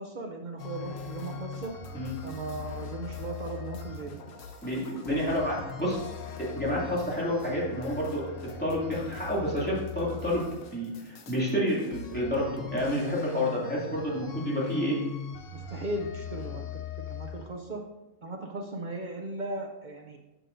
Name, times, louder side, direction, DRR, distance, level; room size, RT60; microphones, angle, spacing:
voice 1, 0.0-1.7 2.2-4.2 15.5-17.8 18.2-20.2, right 2 dB, 70° right, 3 dB, 0.4 m, -37 dB
sound 1, 0.6-17.5, left 5 dB, 60° left, 1.2 m, -40 dB
voice 2, 4.6-6.0 6.4-8.3 8.6-10.4 10.7-15.0, equal, 5° left, -6 dB, 2.4 m, -29 dB
12.5 x 6.3 x 2.6 m, 1.0 s
omnidirectional pair, 1.6 m